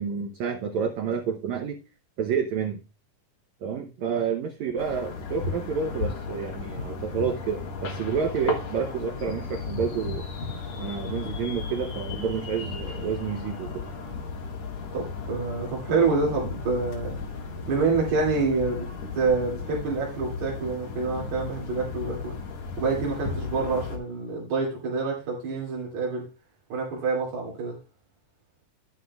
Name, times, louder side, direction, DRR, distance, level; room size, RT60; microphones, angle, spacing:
voice 1, 0.0-1.8 2.2-2.8 3.6-10.3 10.8-13.8, right 6 dB, 80° right, 1.6 m, -29 dB
sound 1, 4.8-24.0, left 4 dB, 55° left, 2.5 m, -35 dB
voice 2, 14.9-17.1 17.7-18.9 19.1-22.4 22.8-26.3 26.7-27.8, right 4 dB, 55° right, 3.6 m, -27 dB
11.0 x 9.8 x 2.3 m
omnidirectional pair, 4.3 m